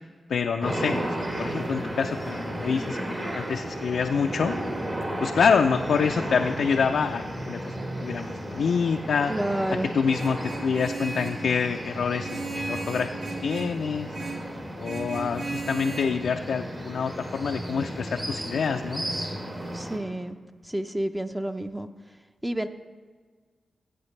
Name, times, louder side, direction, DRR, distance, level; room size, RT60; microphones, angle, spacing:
voice 1, 0.3-4.5 5.2-9.3 9.9-13.1 13.4-14.1 14.8-19.0, left 6 dB, 80° left, 4 dB, 0.4 m, -26 dB
sound 1, 0.6-20.0, right 1 dB, 40° right, 2.7 m, -34 dB
voice 2, 9.3-9.9 19.7-20.4 20.6-21.9 22.4-22.7, right 1 dB, 10° right, 7 dB, 0.7 m, -29 dB
Vehicle horn car horn honking, 10.1-11.5 12.2-13.8 14.1-14.5 14.8-16.0, right 3 dB, 85° right, 2.2 m, -35 dB
15.5 x 8.1 x 3.2 m, 1.5 s
cardioid pair, 50°, 0 cm